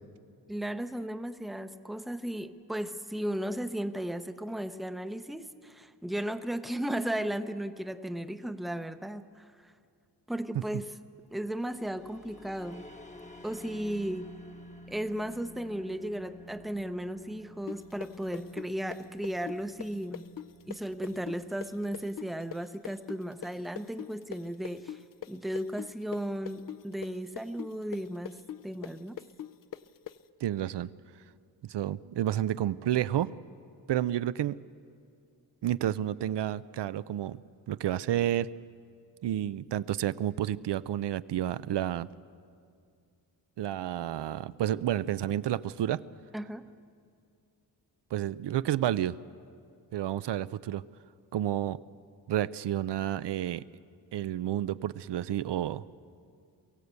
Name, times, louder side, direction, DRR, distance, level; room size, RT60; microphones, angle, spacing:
voice 1, 0.5-9.7 10.3-10.9 11.3-12.9 13.4-14.3 14.9-20.3 20.7-25.0 25.3-29.2 46.3-46.6, right 1 dB, ahead, 10 dB, 0.6 m, -35 dB
sound 1, 11.4-22.1, equal, 15° left, 1.0 m, -51 dB
sound 2, 17.7-25.3 25.6-30.2, left 11 dB, 50° left, 0.6 m, -41 dB
voice 2, 30.4-30.9 31.7-33.3 33.9-34.6 35.6-37.4 37.7-38.5 39.2-42.1 43.6-46.0 48.1-49.2 49.9-50.8 51.3-51.8 52.3-53.6 54.1-55.8, right 12 dB, 80° right, 16 dB, 0.5 m, -30 dB
23.0 x 16.0 x 8.1 m, 2.3 s
wide cardioid pair, 135°, 41 cm